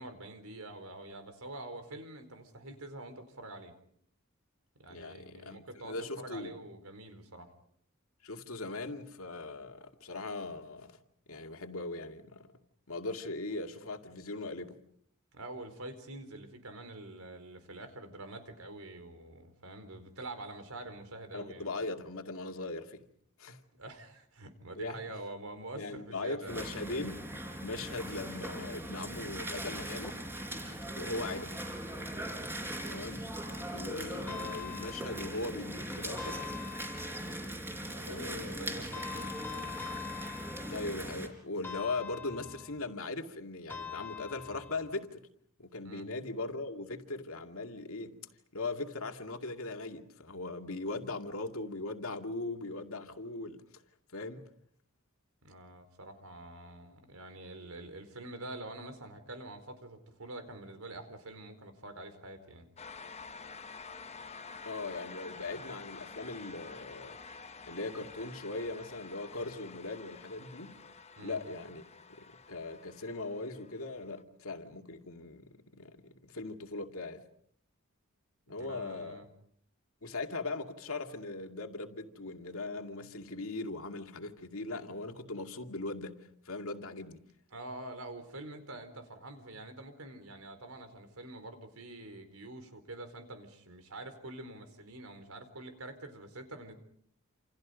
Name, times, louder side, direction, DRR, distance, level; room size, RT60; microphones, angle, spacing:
voice 1, 0.0-3.7 4.8-7.5 15.3-21.7 23.8-26.7 31.1-31.5 37.7-39.7 45.8-46.1 55.4-62.7 71.2-71.4 78.6-79.3 87.5-96.7, right 2 dB, 80° right, 4.4 m, -46 dB
voice 2, 4.9-6.5 8.2-11.0 11.3-12.5 12.9-14.8 21.3-23.0 23.4-23.6 24.7-25.0 25.7-27.2 27.6-30.2 31.0-31.5 32.8-33.3 33.7-36.4 38.1-38.6 40.7-45.3 45.6-48.2 48.5-53.8 54.1-54.4 64.7-67.2 67.6-70.8 71.2-71.8 72.2-77.2 78.5-79.2 80.0-86.2 86.4-87.2, left 2 dB, 70° left, 2.3 m, -39 dB
sound 1, 26.5-41.3, right 1 dB, 10° right, 4.1 m, -40 dB
sound 2, 34.3-35.6 36.2-37.5 38.9-41.1 41.6-42.9 43.7-45.0, left 7 dB, 10° left, 1.6 m, -44 dB
sound 3, 62.8-74.2, left 4 dB, 30° left, 0.9 m, -49 dB
28.5 x 28.5 x 5.2 m
head